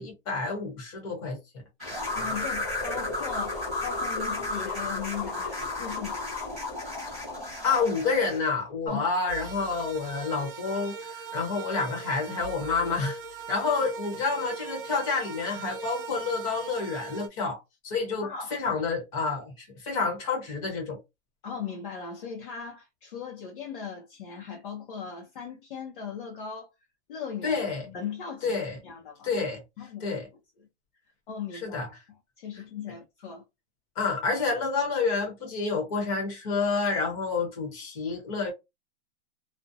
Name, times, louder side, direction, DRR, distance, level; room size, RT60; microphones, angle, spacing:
voice 1, 0.0-1.4 7.6-13.2 13.5-21.0 27.4-27.8 28.4-28.8 29.2-29.6 30.0-30.2 31.6-31.9 34.0-38.5, left 4 dB, 30° left, 1.0 m, -29 dB
sound 1, 1.8-8.5, left 2 dB, ahead, 0.3 m, -33 dB
voice 2, 2.1-6.3 8.9-9.1 9.4-9.5 18.2-18.6 21.4-26.7 27.1-27.6 27.9-28.6 28.8-29.3 29.8-30.2 30.6-30.7 31.3-31.8 32.1-33.4, left 7 dB, 45° left, 0.6 m, -38 dB
sound 2, 9.3-17.3, right 4 dB, 50° right, 0.6 m, -40 dB
2.4 x 2.1 x 2.6 m
hypercardioid pair, 170°, 35 cm